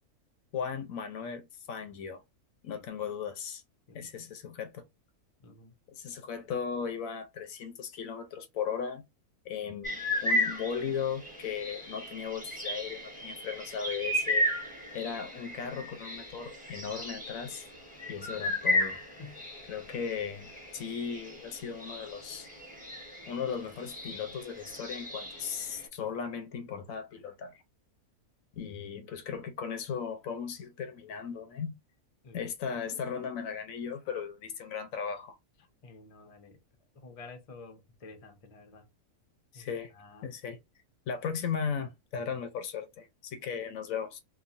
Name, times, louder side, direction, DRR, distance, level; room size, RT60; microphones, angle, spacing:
voice 1, 0.5-2.2 2.6-3.6 3.9-4.8 5.9-9.0 9.4-14.5 14.9-17.7 18.1-19.0 19.7-22.5 23.3-27.6 28.5-31.8 32.3-35.4 39.5-39.9 40.2-40.6 41.1-44.2, left 7 dB, 70° left, 0.9 m, -37 dB
voice 2, 2.7-3.0 3.9-4.1 5.4-5.7 6.1-6.2 19.2-19.5 32.2-32.5 35.8-36.6 36.9-38.9 39.5-39.7 39.9-40.3, left 3 dB, 45° left, 0.4 m, -50 dB
sound 1, 9.8-25.9, left 1 dB, 5° right, 1.1 m, -35 dB
2.9 x 2.3 x 2.5 m
omnidirectional pair, 1.6 m